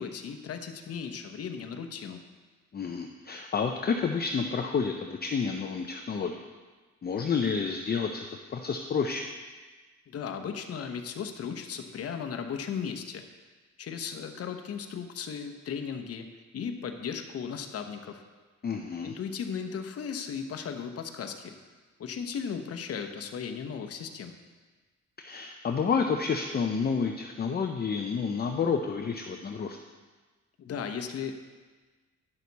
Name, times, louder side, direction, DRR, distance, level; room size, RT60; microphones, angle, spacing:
voice 1, 0.0-2.2 10.1-13.2 13.8-16.3 16.5-18.2 19.0-21.5 22.0-24.3 30.6-31.3, left 6 dB, 50° left, 6 dB, 0.9 m, -36 dB
voice 2, 2.7-6.4 7.0-9.3 18.6-19.1 25.2-29.8, left 5 dB, 30° left, 4 dB, 0.6 m, -30 dB
9.8 x 6.4 x 4.1 m, 1.3 s
cardioid pair, 90°, 30 cm